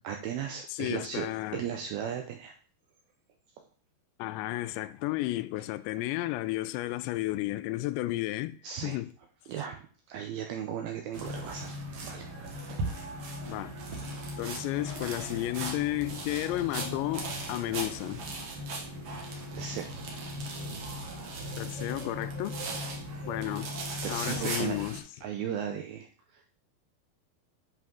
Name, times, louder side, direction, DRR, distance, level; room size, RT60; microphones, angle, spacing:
voice 1, 0.0-1.3 1.5-2.5 8.6-9.0 9.5-11.7 12.0-12.8 19.5-20.0 24.0-24.9 25.2-26.6, right 9 dB, 80° right, 2.2 m, -36 dB
voice 2, 0.7-1.6 4.2-8.6 8.8-9.1 13.5-13.8 14.4-18.3 21.6-22.6 23.3-23.7 24.1-25.0, left 17 dB, 85° left, 2.8 m, -32 dB
sound 1, 11.1-25.0, right 1 dB, 65° right, 1.5 m, -37 dB
10.5 x 5.0 x 3.7 m
omnidirectional pair, 5.0 m